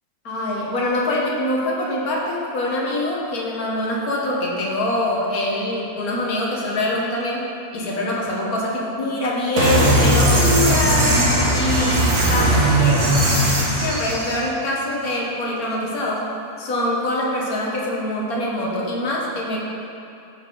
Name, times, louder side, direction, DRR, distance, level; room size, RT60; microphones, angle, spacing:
voice 1, 0.2-7.4 7.7-11.1 11.5-13.1 13.8-16.3 16.6-19.6, left 1 dB, 70° left, -3 dB, 1.8 m, -24 dB
sound 1, 9.6-14.4, right 1 dB, 75° right, 2.0 m, -18 dB
14.0 x 5.8 x 3.9 m, 2.7 s
omnidirectional pair, 1.6 m